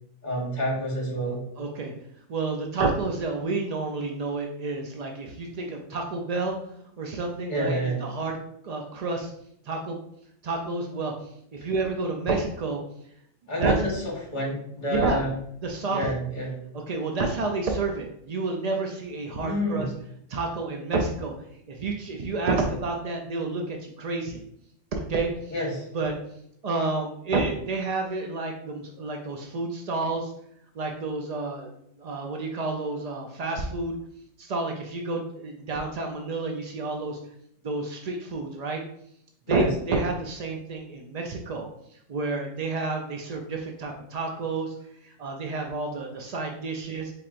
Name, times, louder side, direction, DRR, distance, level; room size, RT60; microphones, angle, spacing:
voice 1, 0.2-1.4 7.5-8.0 13.5-15.3 15.9-16.5 19.3-19.9 25.5-25.9 39.5-39.7, equal, 40° left, -2 dB, 1.4 m, -29 dB
voice 2, 1.6-1.9 2.3-6.6 7.0-8.4 8.6-9.3 9.6-10.0 10.4-12.8 13.6-14.1 14.9-15.2 15.6-16.1 16.7-19.9 20.3-21.3 21.7-24.4 24.9-25.6 25.9-26.1 26.6-30.3 30.7-31.7 32.0-34.0 34.4-37.2 37.6-38.8 39.5-44.7 45.0-47.1, right 3 dB, 85° right, 2 dB, 0.3 m, -29 dB
4.3 x 3.4 x 2.4 m, 0.72 s
omnidirectional pair, 1.3 m